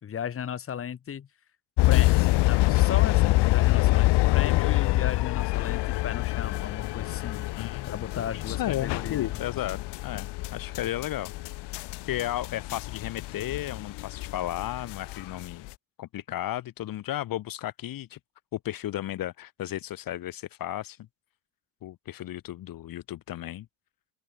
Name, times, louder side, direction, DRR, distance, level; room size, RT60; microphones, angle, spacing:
voice 1, 0.0-1.3 1.9-7.5 7.9-9.4, left 8 dB, 30° left, 3.3 m, -35 dB
sound 1, 1.8-15.7, left 20 dB, 65° left, 1.1 m, -26 dB
voice 2, 7.6-7.9 8.3-11.3 12.1-15.7 16.0-18.2 18.5-21.0 21.8-23.7, left 13 dB, 45° left, 2.8 m, -34 dB
open air
cardioid pair, 175°, 45 cm